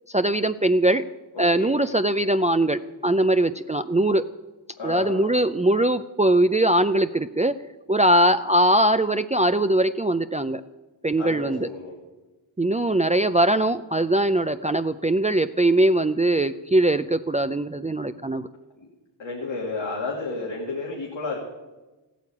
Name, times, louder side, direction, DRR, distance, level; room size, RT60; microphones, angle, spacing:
voice 1, 0.1-1.0 1.4-4.3 4.8-7.5 7.9-10.6 11.0-11.7 12.6-18.5, right 1 dB, 15° right, 10 dB, 0.4 m, -21 dB
voice 2, 1.3-1.7 4.8-5.3 11.1-12.0 18.8-18.9 19.2-21.4, left 3 dB, 85° left, -3 dB, 2.7 m, -32 dB
14.5 x 9.2 x 8.5 m, 1.1 s
wide cardioid pair, 75°, 44 cm